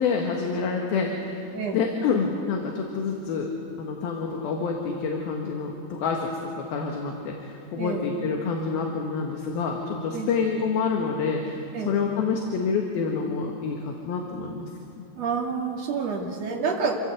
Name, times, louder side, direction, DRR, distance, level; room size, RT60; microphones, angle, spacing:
voice 1, 0.0-3.5 3.8-6.3 6.5-14.7, left 5 dB, 65° left, 1 dB, 3.2 m, -27 dB
voice 2, 15.2-17.0, right 5 dB, 45° right, 0 dB, 2.9 m, -28 dB
27.0 x 16.0 x 8.1 m, 2.6 s
omnidirectional pair, 4.8 m